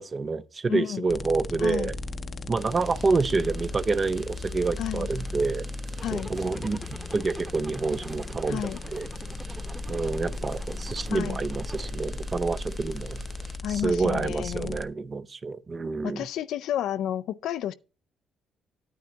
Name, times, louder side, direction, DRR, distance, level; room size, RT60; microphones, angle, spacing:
voice 1, 0.0-1.9 2.5-5.6 6.1-6.8 7.1-9.1 9.9-13.2 13.7-16.3, right 4 dB, 35° right, 0.6 m, -28 dB
voice 2, 0.7-1.1 1.6-1.9 4.8-5.1 6.0-6.3 8.5-8.8 11.1-11.4 13.6-14.8 16.0-17.7, left 11 dB, 80° left, 0.4 m, -31 dB
sound 1, 1.1-14.9, left 2 dB, 35° left, 0.6 m, -36 dB
sound 2, 2.5-13.6, right 4 dB, 50° right, 2.9 m, -50 dB
Zipper (clothing), 6.0-11.9, right 1 dB, 15° right, 1.0 m, -46 dB
9.3 x 9.3 x 2.8 m
cardioid pair, 90°, 0 cm